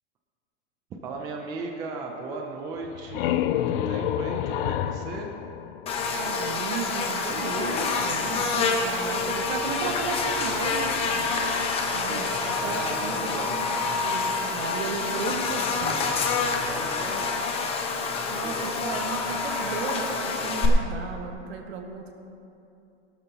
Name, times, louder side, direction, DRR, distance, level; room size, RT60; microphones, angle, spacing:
voice 1, 0.9-5.3 12.1-12.3 12.6-13.5 16.5-17.4 18.4-18.6, right 3 dB, 10° right, 1 dB, 0.4 m, -36 dB
sound 1, 2.8-6.4, left 11 dB, 50° left, 0.5 m, -29 dB
Buzz, 5.9-20.7, left 4 dB, 15° left, 0.8 m, -27 dB
voice 2, 6.1-11.3 11.9-13.6 13.9-16.1 18.2-22.1, right 5 dB, 60° right, 2 dB, 1.8 m, -35 dB
17.0 x 12.5 x 2.9 m, 2.7 s
supercardioid pair, 160°, 36 cm